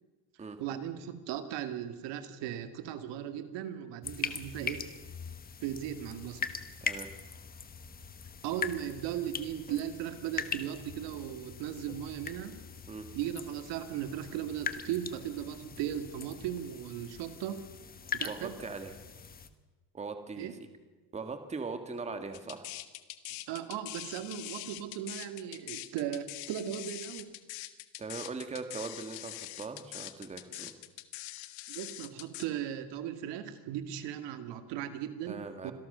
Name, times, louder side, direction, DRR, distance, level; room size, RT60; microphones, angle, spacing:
voice 1, 0.6-4.9 5.6-6.5 8.4-12.6 13.1-17.6 18.1-18.5 20.4-20.5 23.5-27.3 31.7-35.7, right 10 dB, 60° right, 9 dB, 2.2 m, -37 dB
sound 1, 4.0-19.5, left 6 dB, 20° left, 1.2 m, -41 dB
voice 2, 18.2-19.0 19.9-20.5 21.1-22.7 28.0-30.7 35.3-35.7, right 4 dB, 15° right, 7 dB, 1.8 m, -40 dB
sound 2, 22.3-32.5, left 18 dB, 90° left, 1.7 m, -43 dB
26.5 x 17.5 x 6.8 m, 1.3 s
cardioid pair, 155°, 48 cm